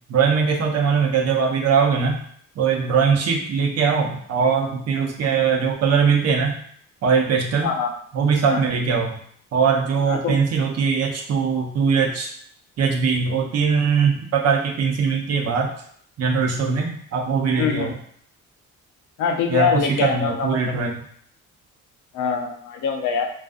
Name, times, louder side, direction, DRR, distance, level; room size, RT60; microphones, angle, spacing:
voice 1, 0.1-2.2 2.6-6.5 7.0-7.7 8.1-9.1 9.5-12.3 12.8-15.7 16.2-17.9 19.5-19.7 20.0-20.9, right 6 dB, 55° right, 0 dB, 0.6 m, -21 dB
voice 2, 7.6-7.9 8.4-8.7 10.1-10.4 17.6-17.9 19.2-20.6 22.1-23.3, left 6 dB, 75° left, 3 dB, 0.5 m, -23 dB
2.4 x 2.3 x 2.4 m, 0.63 s
cardioid pair, 90°, 30 cm